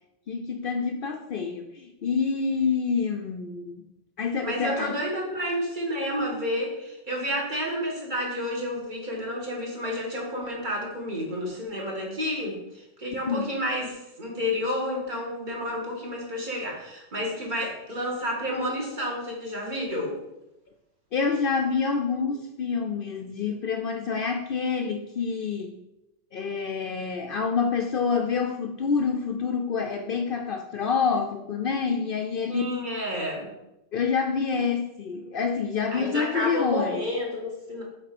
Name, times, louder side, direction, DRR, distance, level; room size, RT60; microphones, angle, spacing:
voice 1, 0.3-3.8 4.2-5.0 13.3-13.5 21.1-25.8 26.3-32.9 33.9-37.0, left 5 dB, 60° left, 4 dB, 0.7 m, -27 dB
voice 2, 4.4-20.2 32.5-33.5 35.9-37.8, equal, 40° right, -2 dB, 1.9 m, -30 dB
7.6 x 3.5 x 5.9 m, 0.91 s
omnidirectional pair, 1.2 m